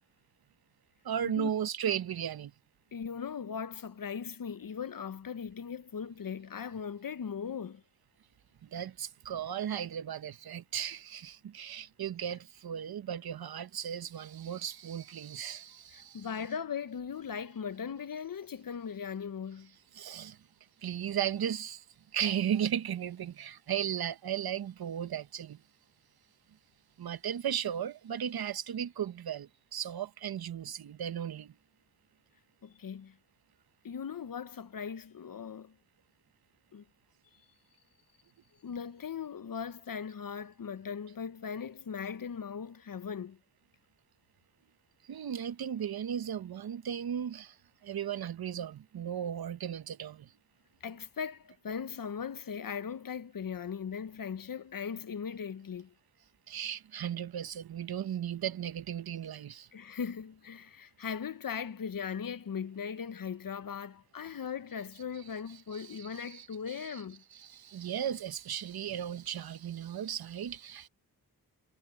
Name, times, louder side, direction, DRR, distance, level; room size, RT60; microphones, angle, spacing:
voice 1, 1.0-2.5 8.7-16.3 19.9-20.4 20.8-21.8 22.1-25.6 27.0-31.5 45.1-47.5 47.8-50.3 56.5-59.7 65.7-67.0 67.3-70.9, right 9 dB, 75° right, 1.0 m, -36 dB
voice 2, 2.9-7.8 15.9-19.7 32.6-33.2 33.8-35.7 36.7-36.8 38.6-43.4 50.8-55.9 59.7-67.2, left 7 dB, 60° left, 1.1 m, -39 dB
cardioid pair, 45°, 37 cm